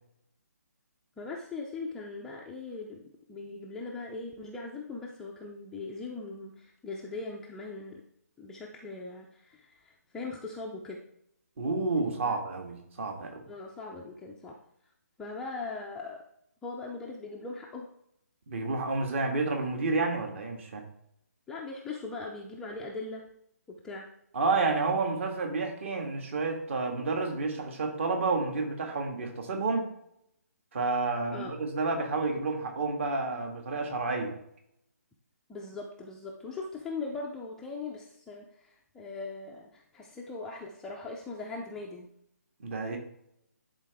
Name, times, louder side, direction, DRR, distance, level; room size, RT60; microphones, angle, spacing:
voice 1, 1.2-8.0 8.4-11.0 12.2-12.3 13.5-14.6 15.2-16.2 16.6-17.9 21.5-23.2 23.7-24.1 31.3-31.5 35.5-42.1, left 3 dB, 5° left, -2 dB, 0.4 m, -40 dB
voice 2, 11.6-13.4 18.5-20.8 24.3-29.9 30.7-34.4 42.6-43.0, right 3 dB, 45° right, 4 dB, 1.7 m, -30 dB
11.0 x 3.9 x 3.4 m, 0.73 s
hypercardioid pair, 160°, 9 cm